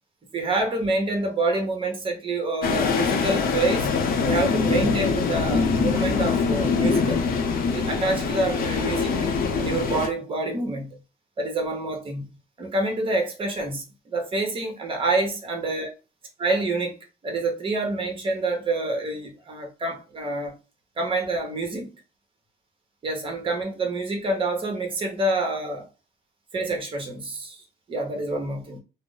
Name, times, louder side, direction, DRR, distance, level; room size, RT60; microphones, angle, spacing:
voice 1, 0.3-3.9 4.2-7.2 7.7-9.1 9.6-11.0 11.4-12.3 12.6-15.9 16.4-20.5 21.0-21.9 23.0-25.9 26.5-28.8, right 2 dB, 30° right, 0.9 m, -27 dB
sound 1, 2.6-10.1, left 5 dB, 60° left, 0.6 m, -23 dB
2.4 x 2.0 x 3.8 m
cardioid pair, 110°, 17 cm